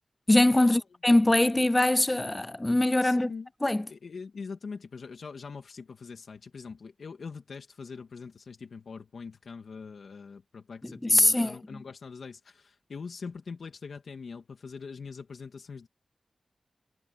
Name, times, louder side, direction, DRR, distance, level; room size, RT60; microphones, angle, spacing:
voice 1, 0.3-3.3 3.6-3.9 11.0-11.6, left 1 dB, 15° left, 0.3 m, -22 dB
voice 2, 3.0-3.5 3.9-15.9, left 5 dB, 70° left, 2.3 m, -42 dB
wide cardioid pair, 130°, 0 cm